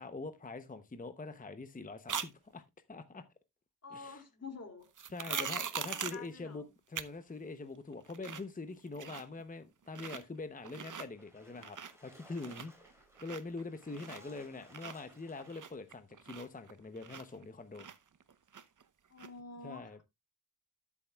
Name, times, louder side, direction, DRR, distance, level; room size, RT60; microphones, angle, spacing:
voice 1, 0.0-2.6 2.9-3.2 3.9-4.2 5.1-17.9 19.6-20.0, left 3 dB, 20° left, 0.8 m, -44 dB
sound 1, 2.1-2.3 5.0-6.3 6.9-7.1 7.5-7.6 7.9-8.5 8.8-9.4 9.9-10.2 10.6-11.1 11.5-12.1 12.4-14.4 14.7-17.4 17.7-18.8 19.2-19.3, right 7 dB, 50° right, 0.8 m, -41 dB
voice 2, 3.8-4.9 5.3-6.7 13.9-14.4 19.1-20.0, left 4 dB, 40° left, 2.6 m, -48 dB
Splash splatter, 11.0-15.9, equal, 5° right, 5.0 m, -61 dB
12.5 x 7.2 x 2.3 m
wide cardioid pair, 80°, 39 cm